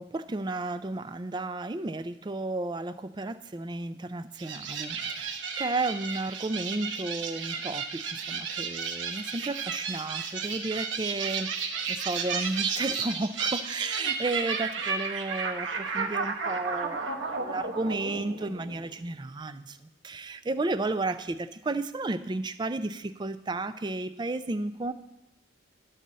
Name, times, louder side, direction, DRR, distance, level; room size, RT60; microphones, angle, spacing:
voice 1, 0.0-5.3 5.6-24.9, right 2 dB, 25° right, 11 dB, 0.4 m, -33 dB
sound 1, 4.4-19.0, right 5 dB, 70° right, 1.1 m, -33 dB
11.0 x 4.0 x 7.5 m, 0.95 s
head